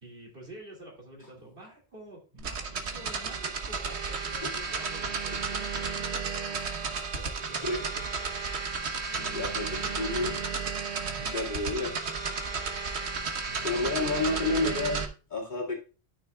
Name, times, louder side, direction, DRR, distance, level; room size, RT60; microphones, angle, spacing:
voice 1, 0.0-6.6 6.9-8.1 9.1-10.4 11.0-11.4 11.6-12.1 13.5-14.8, right 1 dB, 55° right, 0 dB, 2.7 m, -48 dB
sound 1, 2.4-15.1, right 5 dB, 75° right, 1.4 m, -33 dB
voice 2, 9.3-9.7 10.0-10.3 11.3-11.9 13.6-15.7, left 3 dB, 45° left, -3 dB, 2.3 m, -30 dB
13.0 x 6.2 x 2.3 m, 0.34 s
omnidirectional pair, 1.1 m